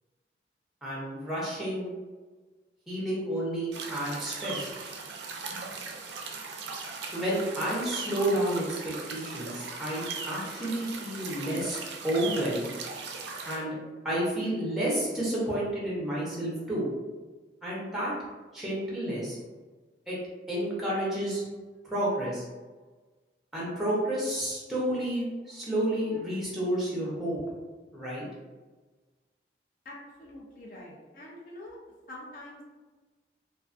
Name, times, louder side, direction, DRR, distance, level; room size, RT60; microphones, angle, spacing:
voice 1, 0.8-1.9 2.9-4.7 5.5-5.6 7.1-11.8 12.0-12.7 13.4-13.8 14.0-16.9 17.6-18.1 18.5-19.4 20.1-20.2 20.5-21.4 21.8-22.4 23.5-27.4 27.9-28.3, right 1 dB, ahead, -6 dB, 0.6 m, -30 dB
sound 1, 3.7-13.6, right 4 dB, 85° right, 0.4 m, -39 dB
voice 2, 29.8-31.8 32.1-32.7, left 1 dB, 50° left, -3 dB, 0.5 m, -45 dB
2.3 x 2.3 x 2.4 m, 1.3 s
head